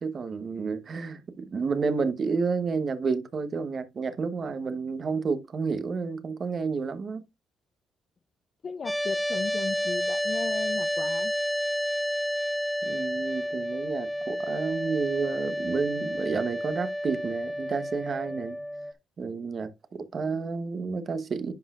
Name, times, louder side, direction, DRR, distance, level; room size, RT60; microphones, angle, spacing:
voice 1, 0.0-7.2 12.8-18.6 19.2-21.5, right 5 dB, 45° right, 1.0 m, -30 dB
voice 2, 8.6-11.3, left 5 dB, 45° left, 0.5 m, -36 dB
sound 1, 8.9-18.9, equal, 5° left, 0.7 m, -30 dB
10.5 x 5.6 x 2.4 m
cardioid pair, 90°, 0 cm